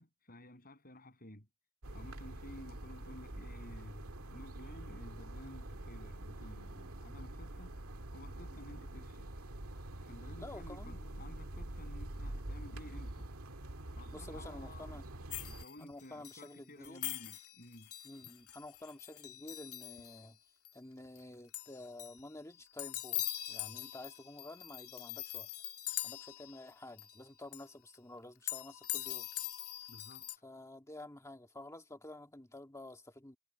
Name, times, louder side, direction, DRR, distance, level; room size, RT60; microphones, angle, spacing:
voice 1, 0.0-1.5 1.9-7.7 8.1-9.3 10.0-13.3 13.9-15.0 15.4-17.9 18.2-18.3 29.9-30.3, left 1 dB, 40° left, 7.9 m, -54 dB
sound 1, 1.8-15.6, right 1 dB, 75° right, 2.0 m, -46 dB
voice 2, 10.4-11.1 14.1-15.0 15.8-17.0 18.0-20.4 20.7-25.5 26.0-29.3 30.4-33.4, left 1 dB, 15° left, 1.9 m, -50 dB
sound 2, 15.3-16.5 16.8-20.3 20.6-20.7 21.0-21.2 21.5-22.2 22.5-26.7 27.0-27.3 27.5-27.6 28.5-30.4, left 14 dB, 75° left, 1.5 m, -42 dB
head